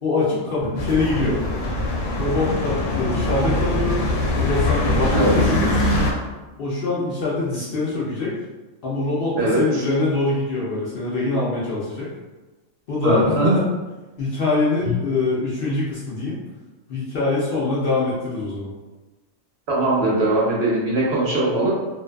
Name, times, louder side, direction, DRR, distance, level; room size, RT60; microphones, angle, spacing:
voice 1, 0.0-1.4 2.2-4.0 4.3-5.7 6.6-8.3 8.8-12.1 12.9-13.6 14.2-16.4 16.9-18.7, left 3 dB, 60° left, -6 dB, 0.6 m, -23 dB
sound 1, 0.8-6.1, left 1 dB, 80° left, 1.0 m, -22 dB
voice 2, 9.3-9.8 13.0-13.5 14.8-14.9 19.7-21.7, right 2 dB, 60° right, -5 dB, 0.9 m, -20 dB
2.5 x 2.3 x 2.2 m, 1.2 s
omnidirectional pair, 1.3 m